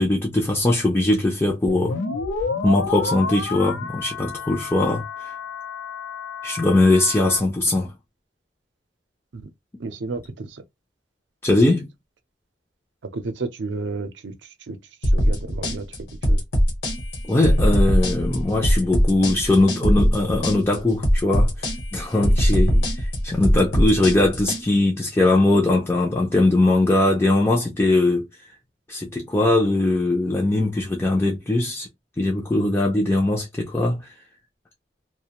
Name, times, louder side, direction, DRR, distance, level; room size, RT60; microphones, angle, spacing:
voice 1, 0.0-1.9 2.6-5.3 6.4-7.9 11.4-11.9 17.2-21.7 21.9-28.3 28.9-31.9 32.2-34.1, left 2 dB, 15° left, 0.4 m, -20 dB
sound 1, 1.7-7.4, left 4 dB, 85° left, 0.6 m, -30 dB
voice 2, 9.8-10.6 13.0-14.4 14.7-15.9 16.3-16.4 22.6-22.8, right 3 dB, 80° right, 0.5 m, -32 dB
sound 2, 15.0-24.6, equal, 70° left, 1.0 m, -20 dB
2.4 x 2.1 x 2.9 m
head